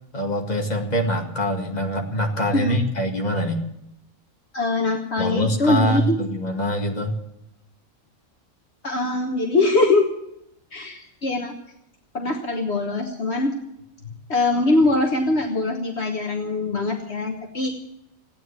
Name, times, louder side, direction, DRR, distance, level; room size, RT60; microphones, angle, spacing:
voice 1, 0.1-3.6 5.2-7.2, equal, 30° left, 2 dB, 2.1 m, -24 dB
voice 2, 4.5-6.2 8.8-10.1 10.7-11.5 12.1-13.5 14.3-17.8, left 2 dB, 55° left, 3 dB, 1.7 m, -22 dB
16.0 x 9.4 x 9.7 m, 0.81 s
omnidirectional pair, 1.4 m